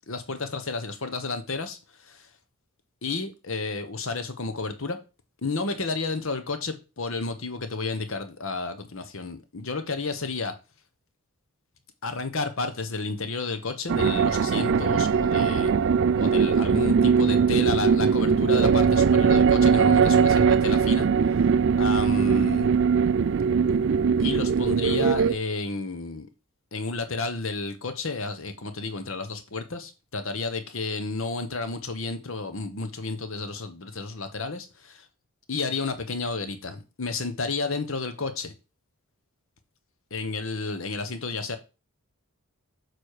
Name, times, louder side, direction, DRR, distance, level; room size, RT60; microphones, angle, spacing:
voice 1, 0.1-2.3 3.0-5.0 5.4-10.5 12.0-15.7 16.2-21.1 21.4-21.5 21.8-22.7 24.2-26.3 26.7-35.1 35.5-38.5 40.1-41.6, left 3 dB, 60° left, 1.1 m, -31 dB
sound 1, 13.9-25.4, right 6 dB, 55° right, 0.3 m, -21 dB
6.7 x 6.3 x 4.9 m
head